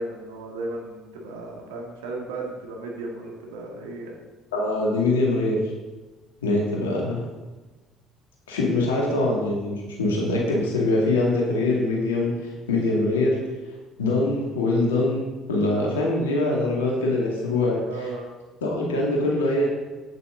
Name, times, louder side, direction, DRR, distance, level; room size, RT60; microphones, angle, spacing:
voice 1, 0.0-4.2 8.8-9.0 17.8-18.3, right 2 dB, 75° right, 0 dB, 1.8 m, -35 dB
voice 2, 4.5-5.6 6.4-7.2 8.5-12.3 12.7-13.4 14.0-15.2 15.5-17.8 18.6-19.6, left 2 dB, 80° left, -2 dB, 2.1 m, -23 dB
8.7 x 8.0 x 3.8 m, 1.2 s
figure-of-eight pair, 55°, 0 cm